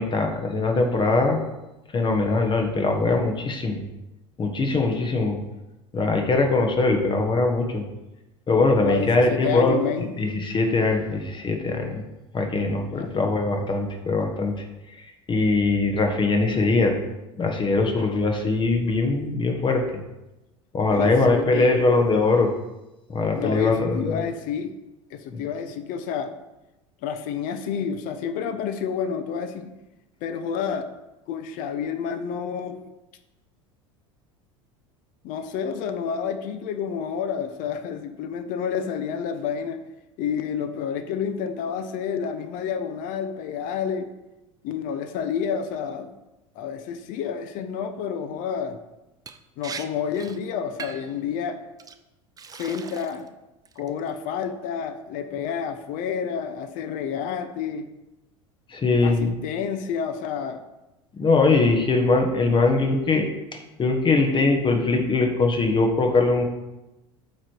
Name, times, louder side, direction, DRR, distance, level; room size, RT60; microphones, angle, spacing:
voice 1, 0.0-1.4 1.9-3.8 4.4-5.4 5.9-7.8 8.5-9.8 10.2-12.0 12.3-17.0 17.4-19.8 20.7-22.5 23.1-24.2 25.3-25.4 58.7-59.3 61.2-66.4, left 3 dB, 30° left, 3 dB, 1.2 m, -22 dB
voice 2, 8.8-10.1 12.9-13.4 20.9-21.8 23.3-24.7 25.1-26.3 27.0-29.7 30.2-30.9 31.3-32.8 35.2-39.8 40.2-44.1 44.6-46.1 46.6-48.8 49.6-51.6 52.5-53.3 53.8-57.9 59.0-60.6, left 7 dB, 55° left, 9 dB, 0.7 m, -29 dB
Liquid, 49.3-49.4 49.6-49.8 50.1-50.4 50.8-51.1 51.8-51.9 52.4-53.3 53.6-54.1, right 6 dB, 20° right, 0.6 m, -39 dB
8.6 x 3.3 x 4.5 m, 0.98 s
hypercardioid pair, 80°, 17 cm